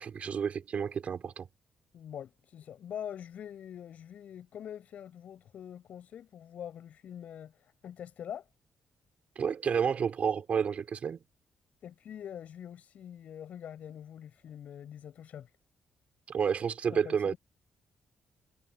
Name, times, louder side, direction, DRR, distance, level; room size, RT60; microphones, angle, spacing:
voice 1, 0.0-1.5 9.4-11.2 16.3-17.3, right 7 dB, 55° right, 4.0 m, -30 dB
voice 2, 1.9-8.4 11.8-15.5 16.9-17.4, left 9 dB, 65° left, 7.9 m, -44 dB
supercardioid pair, 50°, 3 cm